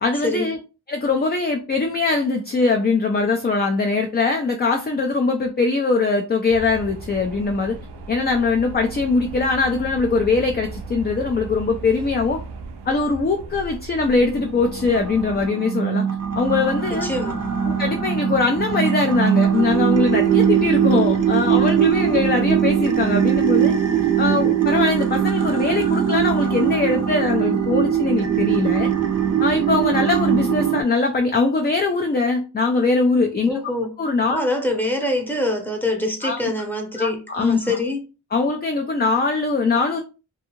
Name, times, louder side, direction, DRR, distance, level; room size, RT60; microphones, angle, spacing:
voice 1, 0.0-0.6 0.9-7.8 8.1-12.4 12.9-16.0 16.3-17.1 17.7-23.7 24.2-28.9 29.4-33.5 34.0-34.4 36.2-36.4 37.0-37.8 38.3-40.0, left 3 dB, 25° left, 0.3 m, -21 dB
sound 1, 6.5-15.5, right 3 dB, 90° right, 0.5 m, -36 dB
sound 2, 14.1-30.8, right 9 dB, 40° right, 0.5 m, -21 dB
voice 2, 16.9-17.4 33.5-33.9 34.3-38.0, left 1 dB, 5° left, 0.8 m, -24 dB
2.6 x 2.3 x 2.8 m
wide cardioid pair, 75°, 40 cm